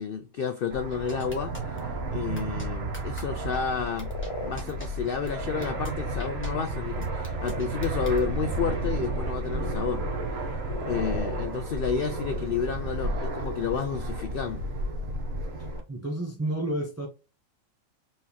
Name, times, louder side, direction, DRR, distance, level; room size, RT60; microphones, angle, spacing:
voice 1, 0.0-4.1 4.4-10.0 10.3-10.6 10.8-14.6, left 6 dB, 90° left, 0.4 m, -31 dB
Fixed-wing aircraft airplane, 0.7-15.8, right 2 dB, 55° right, 1.0 m, -32 dB
sound 1, 1.1-1.8 2.4-2.7 2.9-3.2 3.5-3.6 4.0-4.3 4.6-4.9 5.3-5.4 5.6-5.9 6.2-6.5 7.0-8.2, left 1 dB, 10° left, 1.3 m, -43 dB
sound 2, 4.0-4.6 5.8-5.9 6.5-6.7 7.5-8.1 8.6-9.9 10.6-11.4 12.2-12.3, left 2 dB, 55° left, 1.1 m, -38 dB
voice 2, 15.6-17.1, right 1 dB, 15° right, 0.6 m, -31 dB
4.3 x 3.6 x 2.8 m
omnidirectional pair, 1.5 m